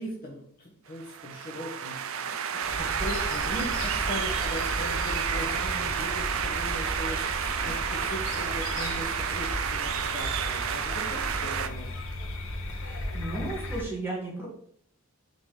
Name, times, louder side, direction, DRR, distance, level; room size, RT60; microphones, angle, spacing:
voice 1, 0.0-12.0, equal, 45° left, -3 dB, 1.1 m, -39 dB
sound 1, 1.0-11.7, right 8 dB, 75° right, 0.5 m, -30 dB
sound 2, 2.6-13.8, left 1 dB, 75° left, 1.2 m, -35 dB
voice 2, 12.8-14.5, right 2 dB, 10° right, -5 dB, 1.5 m, -35 dB
5.4 x 3.9 x 5.0 m, 0.62 s
head